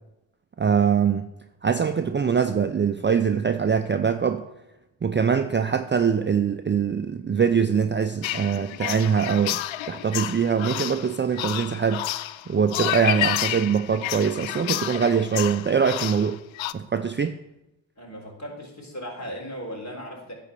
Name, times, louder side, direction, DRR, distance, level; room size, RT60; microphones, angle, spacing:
voice 1, 0.6-1.3 1.6-4.4 5.0-12.1 12.5-16.4 16.7-17.3, right 6 dB, 25° right, 8 dB, 0.5 m, -23 dB
sound 1, 8.2-16.7, left 13 dB, 70° left, 0.5 m, -30 dB
voice 2, 18.0-20.3, equal, 35° left, -1 dB, 3.6 m, -37 dB
9.6 x 4.2 x 6.8 m, 0.90 s
supercardioid pair, 55°, 48 cm